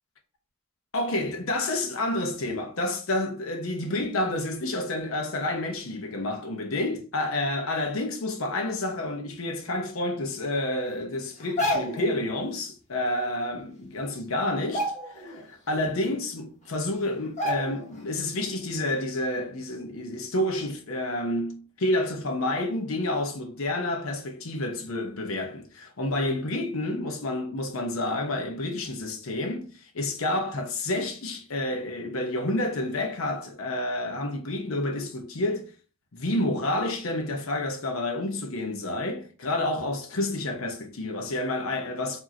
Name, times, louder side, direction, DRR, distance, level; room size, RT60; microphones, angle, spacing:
voice 1, 0.9-35.7 36.1-42.2, left 1 dB, 90° left, 0.8 m, -29 dB
sound 1, 11.4-12.1 13.6-13.7 14.0-14.2 14.6-15.4 15.8-15.9 16.7-16.8 17.4-18.0 18.4-18.5, equal, 35° left, 1.4 m, -30 dB
4.9 x 2.8 x 2.7 m
head